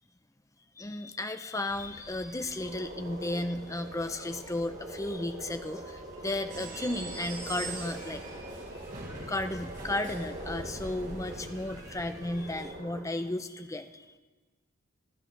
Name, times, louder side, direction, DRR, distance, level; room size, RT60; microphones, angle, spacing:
voice 1, 0.8-8.2 8.7-8.8 9.3-14.0, left 1 dB, 15° left, 8 dB, 0.7 m, -34 dB
sound 1, 1.7-12.7, right 1 dB, 20° right, 1.7 m, -50 dB
sound 2, 2.6-13.0, right 1 dB, 80° right, 5.4 m, -44 dB
sound 3, 6.5-12.6, right 3 dB, 45° right, 4.6 m, -44 dB
26.5 x 13.5 x 3.3 m, 1.3 s
head